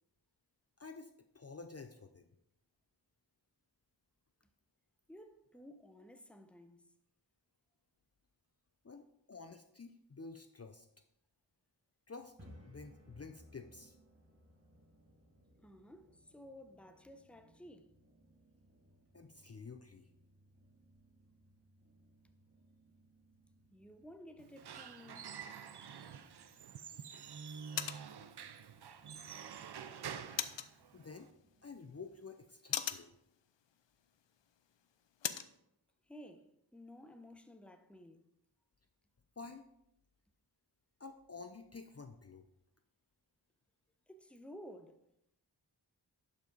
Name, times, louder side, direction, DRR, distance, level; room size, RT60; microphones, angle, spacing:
voice 1, 0.8-2.3 8.8-10.9 12.1-12.3 12.6-13.9 19.1-20.1 30.9-31.3 31.6-33.2 39.4-39.6 41.0-42.5, left 4 dB, 35° left, 0.6 m, -50 dB
voice 2, 5.1-6.9 15.6-17.9 22.2-22.3 23.7-25.4 36.1-38.3 44.1-45.1, equal, 5° left, 0.8 m, -55 dB
sound 1, 12.2-32.1, equal, 30° right, 2.5 m, -65 dB
Squeak / Wood, 24.4-31.3, right 7 dB, 65° right, 0.6 m, -48 dB
sound 2, 26.1-35.6, left 9 dB, 85° left, 0.6 m, -45 dB
11.5 x 5.3 x 4.0 m
cardioid pair, 45°, 43 cm